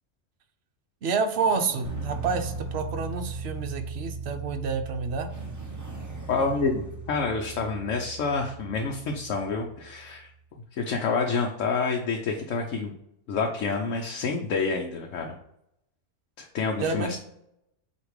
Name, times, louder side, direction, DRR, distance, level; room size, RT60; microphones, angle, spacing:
voice 1, 1.0-5.3 16.8-17.2, right 5 dB, 60° right, 6 dB, 1.0 m, -28 dB
sound 1, 1.3-4.4 5.3-8.0, equal, 15° right, 0.8 m, -45 dB
sound 2, 1.8-10.0, right 4 dB, 5° left, 2.4 m, -38 dB
voice 2, 6.3-10.3 10.7-12.9 13.3-15.4 16.4-17.2, left 4 dB, 75° left, 1 dB, 1.1 m, -28 dB
8.1 x 2.9 x 4.8 m, 0.77 s
omnidirectional pair, 1.3 m